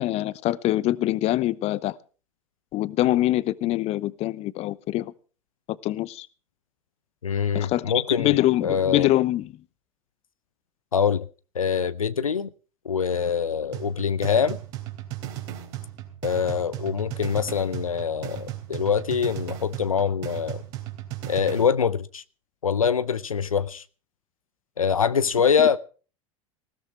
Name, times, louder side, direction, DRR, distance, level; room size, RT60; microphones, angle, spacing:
voice 1, 0.0-2.0 2.7-5.1 5.7-6.3 7.5-9.5, left 15 dB, 35° left, 0.8 m, -24 dB
voice 2, 7.2-8.4 8.6-9.1 10.9-11.3 11.5-12.5 12.9-14.6 16.2-20.6 21.3-22.2 22.6-23.8 24.8-25.8, left 7 dB, 80° left, 0.6 m, -24 dB
sound 1, 13.7-21.7, right 13 dB, 55° right, 3.4 m, -36 dB
20.0 x 16.0 x 3.3 m
figure-of-eight pair, 85°, 17 cm